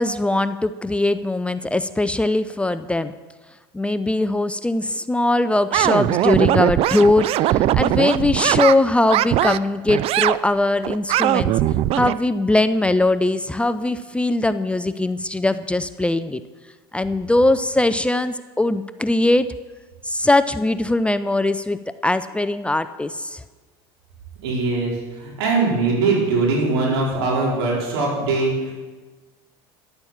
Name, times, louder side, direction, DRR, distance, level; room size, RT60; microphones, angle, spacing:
voice 1, 0.0-3.1 3.7-11.5 11.9-16.4 16.9-19.5 20.0-23.4, left 2 dB, 10° left, 12 dB, 0.5 m, -21 dB
sound 1, 5.7-8.7 9.1-9.6 9.9-10.4 10.8-12.1, right 13 dB, 50° right, 0.4 m, -20 dB
voice 2, 24.4-28.7, right 3 dB, 85° right, -3 dB, 4.7 m, -21 dB
11.5 x 8.8 x 7.2 m, 1.3 s
supercardioid pair, 95°, 13 cm